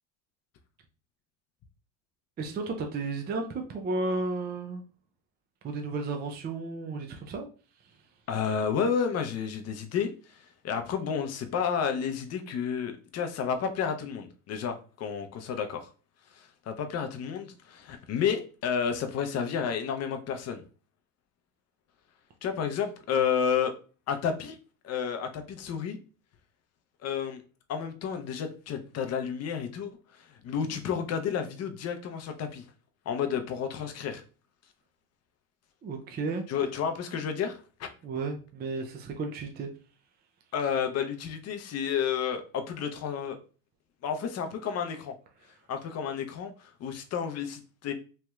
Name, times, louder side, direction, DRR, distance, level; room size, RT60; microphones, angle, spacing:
voice 1, 2.4-4.8 5.6-7.5 35.8-36.4 38.0-39.7, right 3 dB, 25° right, 4 dB, 0.4 m, -33 dB
voice 2, 8.3-15.9 16.3-20.6 22.4-23.7 24.1-24.6 24.8-26.0 27.0-27.4 27.7-32.6 33.1-34.2 36.5-37.9 40.5-43.4 44.0-45.1 45.7-47.9, left 7 dB, 35° left, 7 dB, 0.6 m, -31 dB
3.2 x 2.7 x 2.3 m, 0.37 s
supercardioid pair, 90°, 43 cm